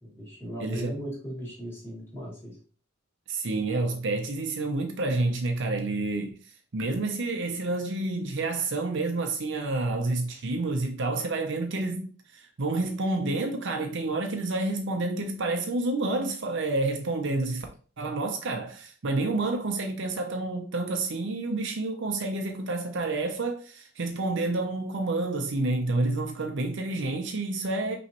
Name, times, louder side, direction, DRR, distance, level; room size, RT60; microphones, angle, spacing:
voice 1, 0.0-2.6, equal, 10° left, 2.6 m, -38 dB
voice 2, 0.6-0.9 3.3-6.4 6.7-17.7 18.0-28.0, right 2 dB, 60° right, 0.7 m, -29 dB
5.7 x 3.1 x 2.9 m
head